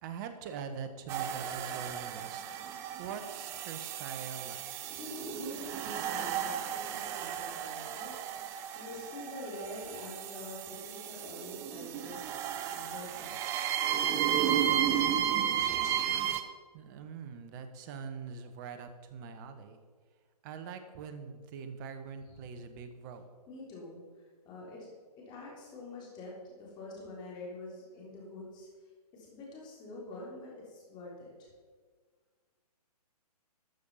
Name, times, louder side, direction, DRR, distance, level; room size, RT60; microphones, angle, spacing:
voice 1, 0.0-2.4 3.0-4.6 16.7-19.8 20.4-23.2 27.1-27.2, right 6 dB, 30° right, 8 dB, 1.0 m, -43 dB
sound 1, 1.1-16.4, right 10 dB, 15° right, 0.4 m, -33 dB
voice 2, 4.9-8.3 8.7-12.2 12.6-13.9 22.3-22.5 23.5-24.0 24.4-24.9 25.2-28.7 29.1-31.5, left 2 dB, 20° left, -3 dB, 3.5 m, -46 dB
13.0 x 6.6 x 5.5 m, 1.5 s
hypercardioid pair, 145°, 21 cm